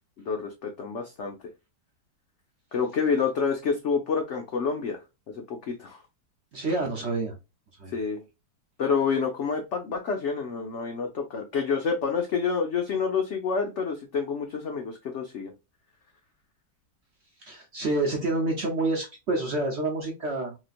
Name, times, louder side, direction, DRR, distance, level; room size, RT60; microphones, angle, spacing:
voice 1, 0.2-1.4 2.7-5.0 5.3-6.0 7.9-8.2 8.8-15.5, left 5 dB, 75° left, 3 dB, 0.6 m, -28 dB
voice 2, 6.5-7.3 7.8-8.0 17.4-20.6, right 2 dB, 55° right, 0 dB, 0.8 m, -28 dB
3.2 x 2.9 x 2.4 m, 0.25 s
omnidirectional pair, 2.0 m